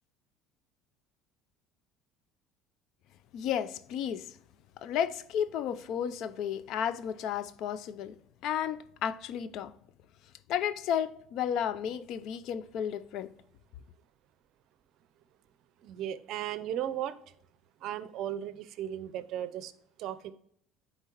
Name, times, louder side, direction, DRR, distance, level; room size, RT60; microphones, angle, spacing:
voice 1, 3.3-4.4 4.8-8.2 8.4-9.7 10.5-13.3, left 9 dB, 65° left, 0.4 m, -33 dB
voice 2, 15.8-17.2 17.8-19.7 20.0-20.3, right 11 dB, 65° right, 0.5 m, -36 dB
9.8 x 4.0 x 3.0 m
supercardioid pair, 90°, 0 cm